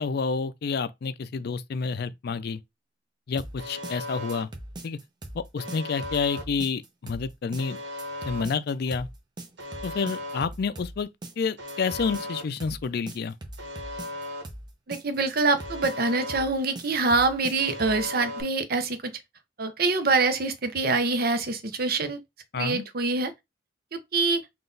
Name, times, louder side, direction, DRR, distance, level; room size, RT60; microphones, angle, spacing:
voice 1, 0.0-2.6 3.3-4.5 4.8-5.0 5.3-7.8 8.2-9.1 9.8-11.1 11.4-13.3 22.5-22.9, left 5 dB, 60° left, 0.4 m, -29 dB
sound 1, 3.4-18.1, right 1 dB, 25° right, 0.7 m, -41 dB
Alarm, 3.6-4.4 5.6-6.4 7.6-8.4 9.6-10.4 11.6-12.4 13.6-14.4 15.6-16.4 17.6-18.4, left 1 dB, 80° right, 1.2 m, -36 dB
voice 2, 14.9-19.1 19.6-22.2 22.6-23.3 23.9-24.4, right 3 dB, 55° right, 0.7 m, -25 dB
3.8 x 2.5 x 3.9 m
head